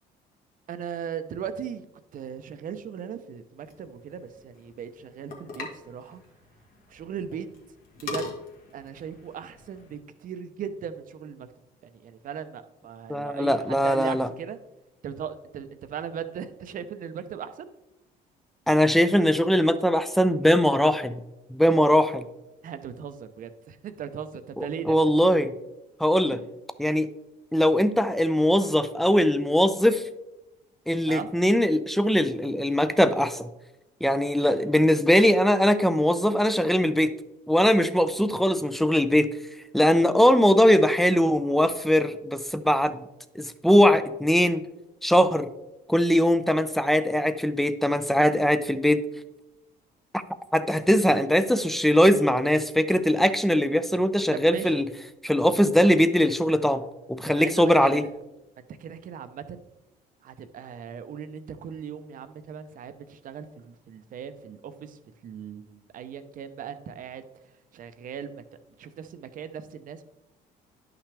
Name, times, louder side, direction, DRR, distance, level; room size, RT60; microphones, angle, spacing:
voice 1, 0.7-1.8 2.1-6.2 6.9-7.5 8.0-8.3 8.7-11.5 12.0-14.6 15.0-17.7 22.6-25.0 26.3-26.4 31.1-31.3 54.3-54.8 57.3-58.1 58.8-59.6 60.2-67.2 67.7-68.4 68.8-70.0, right 8 dB, 55° right, 10 dB, 0.7 m, -38 dB
sound 1, 3.6-10.0, left 4 dB, 55° left, 1.9 m, -42 dB
voice 2, 13.1-14.3 18.7-21.2 21.5-22.2 24.6-25.5 26.0-26.4 26.8-27.1 27.5-30.0 30.9-33.5 34.0-37.1 37.5-39.3 39.7-43.0 43.4-44.6 45.0-45.5 45.9-49.0 50.5-54.9 55.2-56.8 57.1-58.0, equal, ahead, 12 dB, 0.5 m, -21 dB
10.5 x 5.9 x 3.4 m, 0.94 s
cardioid pair, 110°, 17 cm